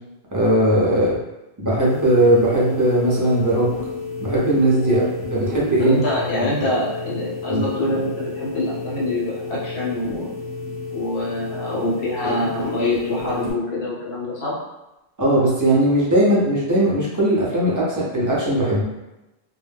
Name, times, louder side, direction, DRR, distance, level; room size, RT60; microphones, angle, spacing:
voice 1, 0.3-1.2 1.6-3.7 4.2-5.0 5.3-6.0 7.5-7.6 15.2-18.8, right 1 dB, 25° right, -7 dB, 0.5 m, -18 dB
sound 1, 1.8-13.5, left 4 dB, 40° left, 0.7 m, -31 dB
voice 2, 4.8-5.1 5.8-10.3 10.9-14.6, left 1 dB, 70° left, -5 dB, 1.0 m, -25 dB
2.2 x 2.1 x 3.3 m, 0.98 s
omnidirectional pair, 1.1 m